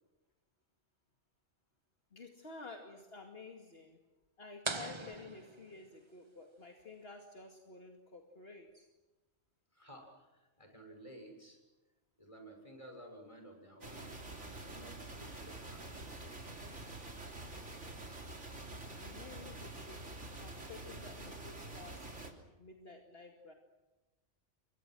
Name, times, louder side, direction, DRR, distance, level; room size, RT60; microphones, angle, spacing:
voice 1, 2.1-4.0 4.4-8.9 18.6-23.5, left 3 dB, 55° left, 2 dB, 2.6 m, -52 dB
sound 1, 4.6-6.3, right 3 dB, 25° right, 1.1 m, -42 dB
voice 2, 9.7-11.6 12.2-15.9, right 1 dB, 25° left, 3 dB, 6.7 m, -54 dB
sound 2, 13.8-22.3, right 2 dB, 80° right, 3.8 m, -47 dB
30.0 x 24.5 x 6.3 m, 1.1 s
omnidirectional pair, 1.2 m